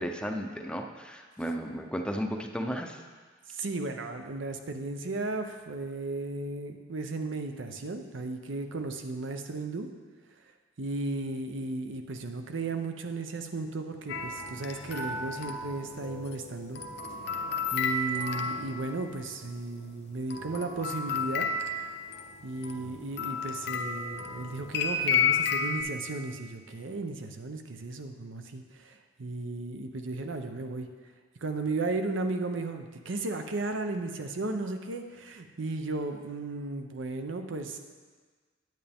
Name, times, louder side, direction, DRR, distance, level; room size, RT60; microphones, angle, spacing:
voice 1, 0.0-3.0, equal, 5° left, 3 dB, 0.5 m, -34 dB
voice 2, 3.5-9.9 10.8-16.8 17.7-21.5 22.4-30.9 31.4-37.8, right 3 dB, 85° right, 5 dB, 0.7 m, -35 dB
sound 1, 14.1-19.1 20.3-25.8, left 5 dB, 60° left, 0.7 m, -32 dB
9.2 x 8.8 x 3.5 m, 1.5 s
head